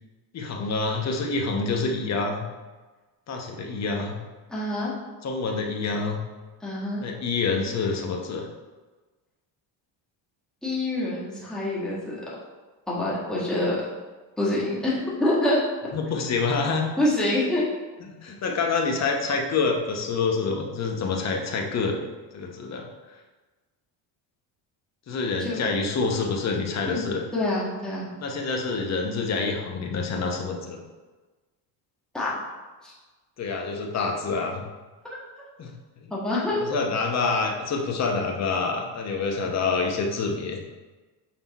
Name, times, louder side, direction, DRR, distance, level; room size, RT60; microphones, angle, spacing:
voice 1, 0.3-2.4 3.3-4.2 5.2-6.2 7.0-8.5 15.9-16.8 18.2-22.0 22.3-22.9 25.1-27.2 28.2-30.8 33.4-34.7 35.6-35.7 36.0-36.1 36.7-40.6, left 4 dB, 35° left, 2 dB, 0.9 m, -27 dB
voice 2, 4.5-4.9 6.6-7.0 10.6-12.2 12.9-13.8 14.4-15.6 17.0-17.7 25.4-25.6 26.8-27.0 27.3-28.1 32.1-32.3 32.8-32.9 36.1-36.8, left 1 dB, ahead, -7 dB, 1.5 m, -26 dB
6.0 x 3.8 x 4.1 m, 1.3 s
cardioid pair, 120°, 46 cm